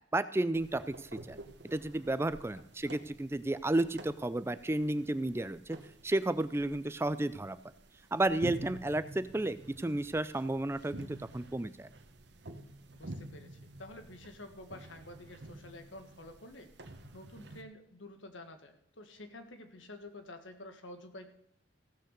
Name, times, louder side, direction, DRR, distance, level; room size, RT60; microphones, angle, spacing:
voice 1, 0.0-1.4 1.6-5.8 6.0-7.6 8.1-11.9, right 2 dB, 15° right, 14 dB, 0.4 m, -32 dB
sound 1, 0.5-17.6, right 1 dB, 65° right, 1.1 m, -49 dB
voice 2, 2.5-2.9 12.9-16.7 17.1-21.3, left 1 dB, 90° left, 7 dB, 1.7 m, -50 dB
15.5 x 6.5 x 6.7 m, 0.73 s
head